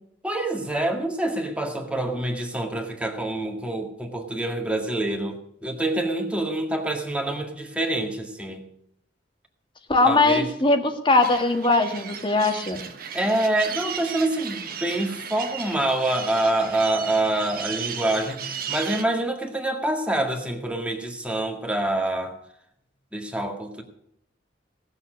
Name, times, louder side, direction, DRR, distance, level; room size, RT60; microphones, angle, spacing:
voice 1, 0.2-8.6 10.0-10.5 13.1-22.4 23.1-23.8, right 1 dB, 5° right, 2 dB, 1.9 m, -26 dB
voice 2, 9.9-12.8, left 2 dB, 30° left, 5 dB, 1.7 m, -20 dB
sound 1, 11.2-19.0, right 7 dB, 55° right, 1.3 m, -35 dB
18.0 x 7.1 x 6.3 m, 0.73 s
head